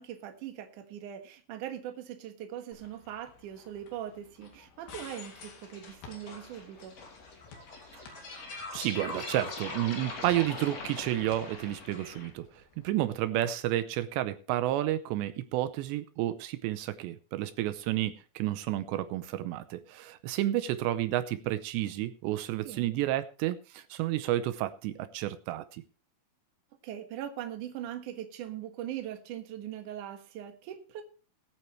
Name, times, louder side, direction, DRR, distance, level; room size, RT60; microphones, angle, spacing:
voice 1, 0.0-7.0 22.6-22.9 26.8-31.0, right 11 dB, 60° right, 5 dB, 2.4 m, -41 dB
sound 1, 2.7-13.2, left 5 dB, 80° left, 4.6 m, -54 dB
sound 2, 5.1-12.3, left 3 dB, 40° left, 3.1 m, -42 dB
voice 2, 8.7-25.8, right 14 dB, 80° right, 11 dB, 2.9 m, -31 dB
20.0 x 9.2 x 3.2 m, 0.36 s
omnidirectional pair, 5.0 m